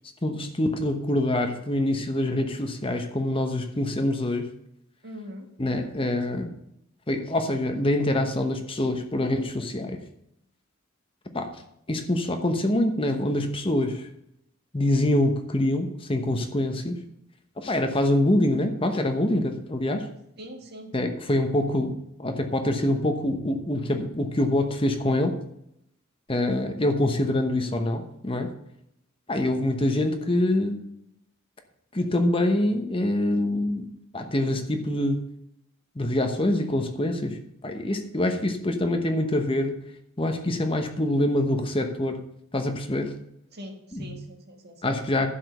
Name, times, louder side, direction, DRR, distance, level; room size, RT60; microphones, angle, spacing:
voice 1, 0.2-4.5 5.6-6.5 7.1-10.0 11.3-11.5 11.9-14.1 14.7-17.0 17.6-20.1 20.9-21.9 22.2-25.4 26.3-28.5 29.3-30.8 31.9-35.2 35.9-39.8 40.2-42.2 42.5-43.1 43.9-44.1 44.8-45.3, left 1 dB, 25° left, 6 dB, 1.0 m, -25 dB
voice 2, 5.0-5.5 20.4-20.9 43.5-44.8, equal, 50° right, 2 dB, 1.7 m, -42 dB
11.5 x 5.1 x 6.8 m, 0.77 s
head